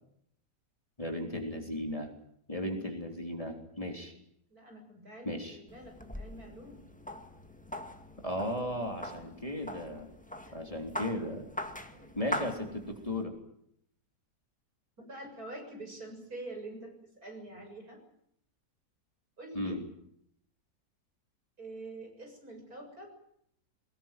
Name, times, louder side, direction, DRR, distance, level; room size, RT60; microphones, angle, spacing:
voice 1, 1.0-2.1 2.5-4.1 5.3-5.6 8.2-10.1 10.5-11.4 12.2-13.3 19.5-19.8, left 1 dB, 20° left, 2 dB, 3.6 m, -36 dB
voice 2, 4.5-6.8 9.2-9.3 10.5-10.6 11.8-12.2 15.1-18.0 19.4-19.8 21.6-23.1, right 2 dB, 70° right, 3 dB, 7.8 m, -46 dB
sound 1, 5.7-13.2, equal, 5° left, 1.7 m, -42 dB
23.0 x 20.5 x 9.2 m, 0.72 s
omnidirectional pair, 1.7 m